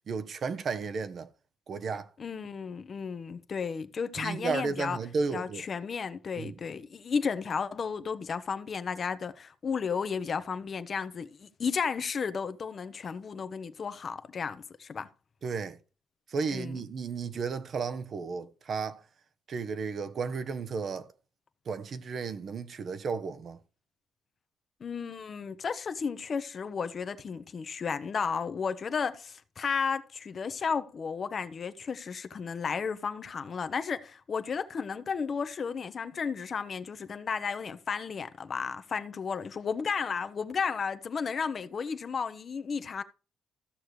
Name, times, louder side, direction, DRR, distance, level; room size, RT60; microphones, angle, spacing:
voice 1, 0.1-1.3 1.7-2.1 4.2-5.6 6.4-6.6 15.4-15.8 16.3-19.0 19.5-21.1 21.7-23.6, right 5 dB, 50° right, 0.9 m, -33 dB
voice 2, 2.2-5.0 5.3-15.1 16.5-16.8 24.8-43.0, left 6 dB, 45° left, 0.8 m, -33 dB
14.5 x 6.5 x 3.2 m
cardioid pair, 90°, 0 cm